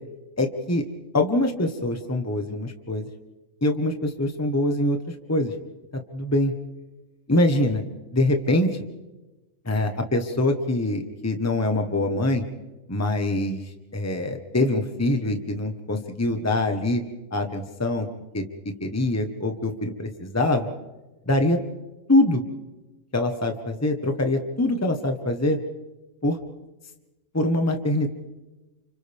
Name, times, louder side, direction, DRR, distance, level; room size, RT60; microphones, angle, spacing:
voice 1, 0.4-0.8 1.1-3.0 3.6-5.0 5.3-5.5 6.1-6.5 7.3-7.8 8.1-8.7 9.6-12.4 12.9-13.6 13.9-17.0 17.3-18.1 18.3-18.4 18.8-20.7 21.3-21.6 22.1-22.4 23.1-25.6 26.2-26.4 27.3-28.1, left 1 dB, 10° left, 5 dB, 1.3 m, -24 dB
30.0 x 28.5 x 3.6 m, 1.1 s
omnidirectional pair, 1.4 m